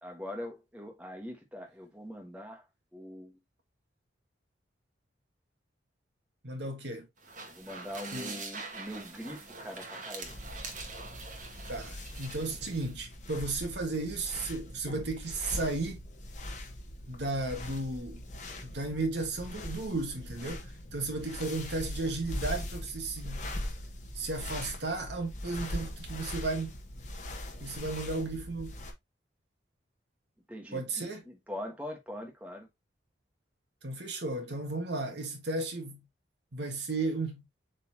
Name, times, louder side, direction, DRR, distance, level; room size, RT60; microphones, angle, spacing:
voice 1, 0.0-2.6 2.9-3.3 7.5-10.4 30.5-32.7, left 1 dB, 5° right, 1.4 m, -42 dB
voice 2, 6.4-7.1 8.1-8.3 11.7-16.0 17.1-18.2 18.6-23.5 24.1-26.7 27.6-28.8 30.7-31.2 33.8-36.0 36.5-37.4, right 2 dB, 65° right, 1.7 m, -34 dB
sound 1, 7.2-13.0, right 4 dB, 40° right, 1.7 m, -44 dB
sound 2, 10.2-28.9, left 1 dB, 40° left, 1.6 m, -41 dB
7.7 x 4.2 x 2.9 m
head